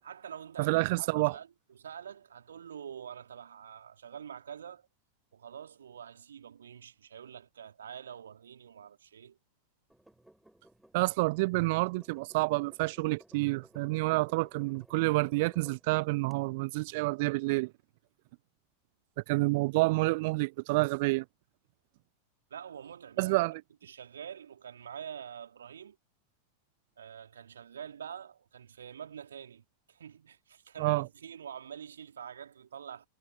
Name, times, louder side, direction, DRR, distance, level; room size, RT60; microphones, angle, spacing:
voice 1, 0.0-4.9 5.3-9.4 22.5-26.0 27.0-33.1, right 8 dB, 65° right, 3.7 m, -46 dB
voice 2, 0.6-1.3 10.9-17.7 19.3-21.2 23.2-23.6 30.8-31.1, right 24 dB, 50° right, 0.6 m, -28 dB
sound 1, 9.9-15.8 16.3-16.4, right 1 dB, 5° right, 5.9 m, -59 dB
figure-of-eight pair, 90°, 0 cm